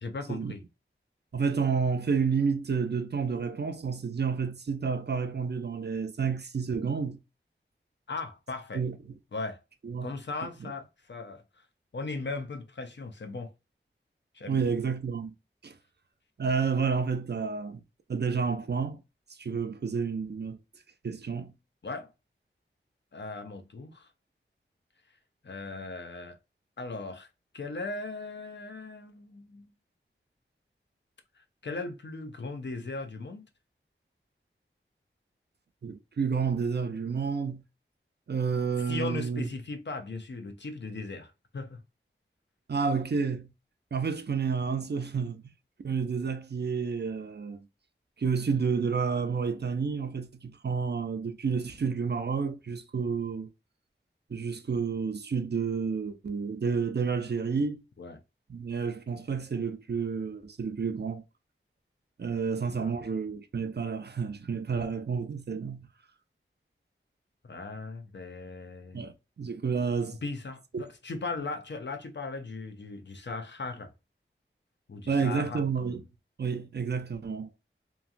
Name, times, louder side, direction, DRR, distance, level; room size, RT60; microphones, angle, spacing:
voice 1, 0.0-0.6 8.1-8.8 9.3-9.6 10.0-11.7 11.9-13.5 14.3-14.7 21.8-22.1 23.1-24.1 25.4-26.4 26.8-27.3 27.5-29.7 31.3-33.5 38.9-41.8 58.0-58.2 62.7-62.9 67.4-69.0 70.2-73.9 74.9-76.0, left 3 dB, 60° left, 0.6 m, -38 dB
voice 2, 1.3-7.2 8.7-9.0 9.8-10.1 14.5-15.3 15.6-15.7 16.4-17.8 18.1-19.0 19.3-20.6 21.0-21.5 35.8-37.6 38.3-39.5 42.7-43.5 43.9-45.4 45.8-47.7 48.2-53.5 54.3-57.8 58.5-61.2 62.2-65.9 68.9-69.1 69.4-70.2 75.1-76.0 76.4-77.5, right 5 dB, 55° right, 0.5 m, -30 dB
3.0 x 2.4 x 2.4 m
wide cardioid pair, 65°, 21 cm